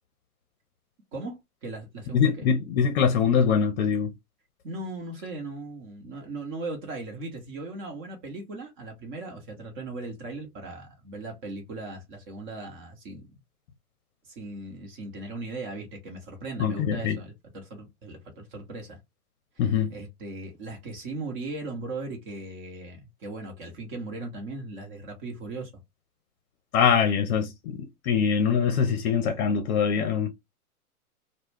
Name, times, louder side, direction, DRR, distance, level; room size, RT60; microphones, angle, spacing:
voice 1, 1.1-2.5 4.6-13.3 14.2-19.0 19.5-25.7, right 2 dB, 35° right, 0.9 m, -38 dB
voice 2, 2.1-4.1 16.6-17.2 19.6-19.9 26.7-30.3, left 7 dB, 50° left, 0.6 m, -23 dB
2.2 x 2.1 x 3.3 m
hypercardioid pair, 110°, 45 cm